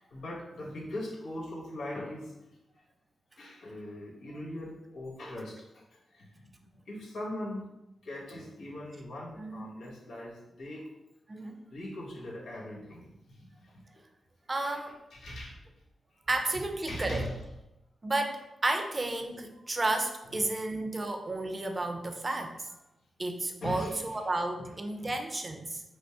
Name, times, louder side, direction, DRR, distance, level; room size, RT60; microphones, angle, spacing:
voice 1, 0.0-2.5 3.4-6.3 6.9-7.6 8.0-10.8 11.7-13.8 14.6-14.8 15.1-15.6 16.5-17.5 18.7-18.9 19.5-19.6 20.3-20.6 23.6-24.0 24.6-24.7 25.0-25.2, left 1 dB, 90° left, -5 dB, 1.5 m, -40 dB
voice 2, 14.5-15.0 16.3-17.2 18.0-22.7 23.2-25.8, right 2 dB, 30° right, 5 dB, 0.6 m, -32 dB
5.1 x 2.1 x 4.8 m, 0.92 s
cardioid pair, 75°, 0 cm